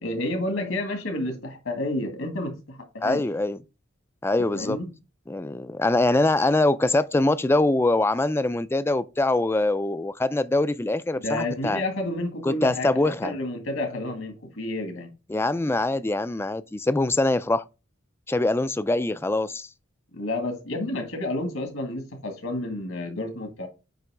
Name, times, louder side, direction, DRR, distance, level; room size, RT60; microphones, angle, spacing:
voice 1, 0.0-3.2 4.5-4.9 11.2-15.1 20.1-23.7, left 1 dB, 75° left, 2.0 m, -30 dB
voice 2, 3.0-3.6 4.2-4.8 5.3-11.8 12.4-13.3 15.3-17.6 18.3-19.7, left 2 dB, 10° left, 0.3 m, -23 dB
8.9 x 3.0 x 4.9 m
head